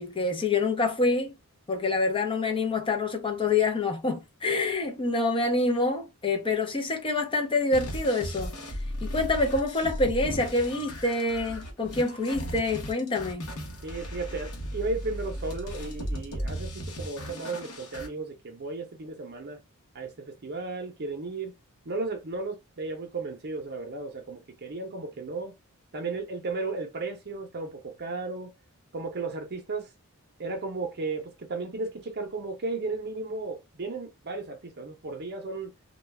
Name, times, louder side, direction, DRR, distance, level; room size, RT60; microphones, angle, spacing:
voice 1, 0.0-1.3 1.7-8.5 9.0-13.4, left 3 dB, 25° left, 0.6 m, -26 dB
sound 1, 7.7-18.1, equal, 70° left, 0.9 m, -36 dB
voice 2, 13.8-19.6 19.9-21.5 21.8-25.5 25.9-28.5 28.9-29.9 30.4-35.7, right 3 dB, 50° right, 0.7 m, -34 dB
2.3 x 2.2 x 3.1 m
head